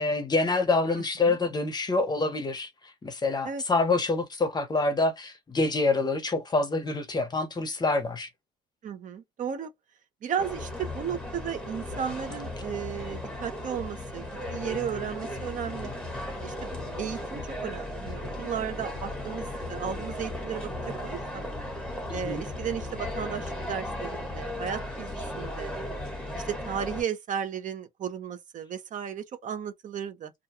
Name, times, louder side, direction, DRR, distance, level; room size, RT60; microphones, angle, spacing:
voice 1, 0.0-2.7 3.0-8.3 22.1-22.4, left 3 dB, 25° left, 0.8 m, -26 dB
voice 2, 8.8-9.7 10.2-15.9 16.4-16.7 17.0-21.4 22.1-25.8 26.3-30.3, right 8 dB, 50° right, 0.7 m, -34 dB
sound 1, 10.4-27.0, left 1 dB, 5° left, 1.3 m, -36 dB
2.5 x 2.2 x 2.8 m
cardioid pair, 110°, 17 cm